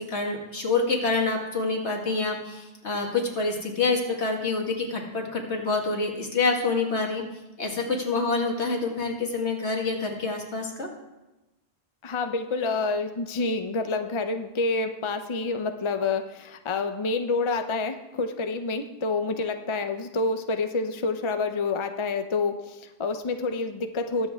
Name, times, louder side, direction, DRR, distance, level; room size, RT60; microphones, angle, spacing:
voice 1, 0.0-7.2 7.6-10.9, left 3 dB, 80° left, 1 dB, 2.1 m, -27 dB
voice 2, 12.0-24.3, left 3 dB, 35° left, 7 dB, 0.6 m, -28 dB
21.0 x 7.6 x 3.5 m, 0.99 s
omnidirectional pair, 1.1 m